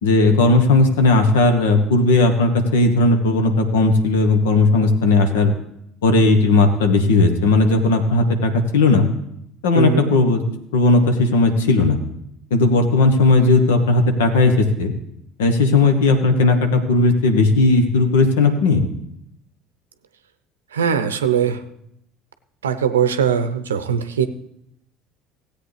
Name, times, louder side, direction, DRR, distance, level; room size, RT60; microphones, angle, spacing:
voice 1, 0.0-5.5 6.0-9.1 9.6-10.4 10.7-12.0 12.5-14.9 15.4-18.8, left 3 dB, 75° left, 7 dB, 1.1 m, -16 dB
voice 2, 9.7-10.1 20.7-21.6 22.6-24.3, right 8 dB, 85° right, 10 dB, 0.6 m, -20 dB
16.5 x 8.4 x 3.4 m, 0.77 s
hypercardioid pair, 65°, 0 cm